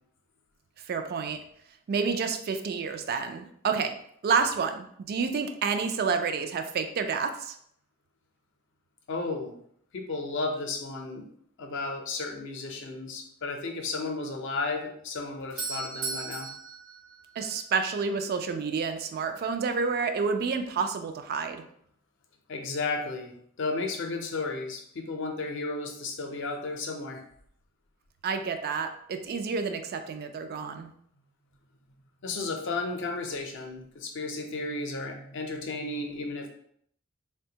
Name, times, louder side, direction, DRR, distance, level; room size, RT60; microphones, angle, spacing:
voice 1, 0.8-1.4 1.9-4.0 4.2-7.6 17.4-21.6 28.2-30.9, right 5 dB, 50° right, 7 dB, 0.3 m, -29 dB
voice 2, 9.1-9.5 9.9-11.2 11.6-16.5 22.5-23.3 23.6-27.2 32.2-36.5, left 3 dB, 60° left, 3 dB, 0.5 m, -33 dB
Doorbell, 15.1-18.0, right 4 dB, 70° right, 0.9 m, -37 dB
3.3 x 2.2 x 2.8 m, 0.67 s
head